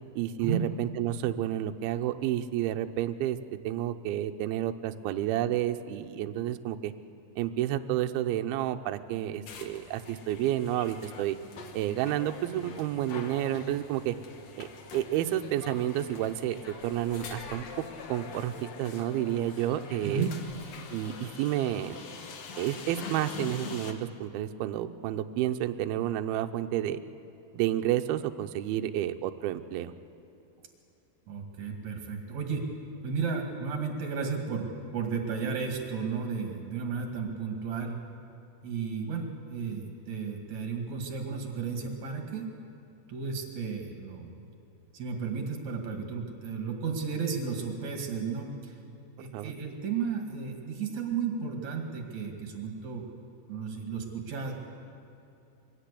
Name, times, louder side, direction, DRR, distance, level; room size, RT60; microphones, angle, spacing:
voice 1, 0.2-3.4 3.6-6.9 7.4-11.4 11.7-14.2 14.6-14.7 14.9-17.7 18.1-20.3 20.9-22.0 22.6-27.0 27.5-29.9 49.2-49.5, right 12 dB, 80° right, 7 dB, 2.2 m, -30 dB
sound 1, 9.5-23.9, left 4 dB, 75° left, 1.5 m, -44 dB
voice 2, 20.0-20.4 31.3-32.7 33.0-38.0 38.6-42.5 43.1-44.4 44.9-48.8 49.2-53.1 53.5-54.5, right 5 dB, 50° right, 2 dB, 2.9 m, -33 dB
23.5 x 16.0 x 8.4 m, 2.7 s
omnidirectional pair, 5.2 m